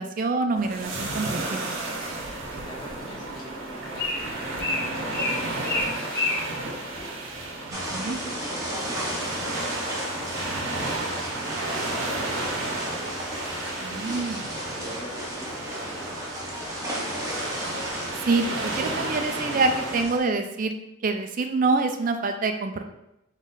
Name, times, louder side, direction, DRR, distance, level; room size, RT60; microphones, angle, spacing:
voice 1, 0.0-1.8 7.9-8.2 13.8-14.4 18.2-20.7 21.0-22.8, right 3 dB, 40° right, 6 dB, 0.4 m, -26 dB
sound 1, 0.6-20.0, right 2 dB, 70° right, 0.8 m, -33 dB
Bird, 2.4-7.6, left 3 dB, 50° left, 1.6 m, -32 dB
voice 2, 2.6-4.7 5.0-7.1 7.8-13.3 13.8-14.3 14.8-17.3, right 1 dB, 25° left, -3 dB, 0.9 m, -46 dB
sound 2, 7.7-20.2, equal, 15° right, 0.8 m, -33 dB
3.9 x 3.1 x 3.9 m, 0.86 s
head